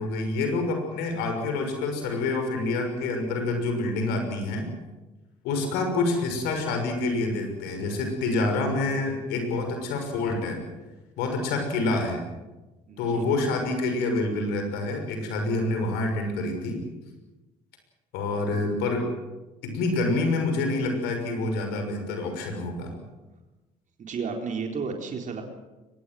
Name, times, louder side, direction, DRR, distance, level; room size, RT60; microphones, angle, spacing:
voice 1, 0.0-4.7 5.4-10.6 11.2-12.2 13.0-16.8 18.1-19.1 19.6-22.9, left 2 dB, 80° left, 5 dB, 6.3 m, -27 dB
voice 2, 12.9-13.3 24.0-25.4, right 5 dB, 50° right, 3 dB, 3.9 m, -32 dB
23.5 x 21.0 x 7.9 m, 1.1 s
hypercardioid pair, 65°, 17 cm